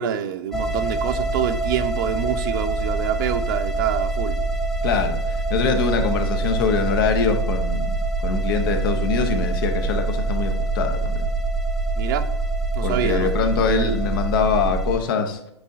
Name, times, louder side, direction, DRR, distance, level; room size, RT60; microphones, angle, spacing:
voice 1, 0.0-4.4 12.0-12.3 12.7-13.4 13.7-14.0, right 9 dB, 45° right, 11 dB, 0.6 m, -26 dB
sound 1, 0.5-15.0, right 2 dB, ahead, 0.7 m, -24 dB
voice 2, 4.8-7.9 8.2-11.2 12.8-15.4, left 5 dB, 50° left, 6 dB, 0.9 m, -23 dB
8.6 x 4.6 x 2.7 m, 0.77 s
figure-of-eight pair, 105°, 15 cm